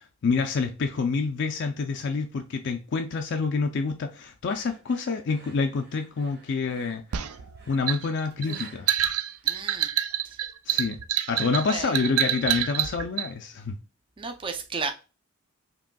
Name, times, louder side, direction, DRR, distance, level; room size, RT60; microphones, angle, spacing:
voice 1, 0.0-7.0 7.7-8.9 10.7-11.0 11.3-13.8, left 4 dB, 55° left, 0.4 m, -27 dB
sound 1, 4.5-10.0, right 2 dB, 45° right, 1.6 m, -52 dB
sound 2, 7.1-13.3, right 11 dB, 80° right, 0.4 m, -27 dB
voice 2, 9.4-9.9 10.2-10.4 11.7-11.9 14.2-14.9, right 4 dB, 25° right, 0.4 m, -33 dB
5.0 x 3.0 x 2.2 m
head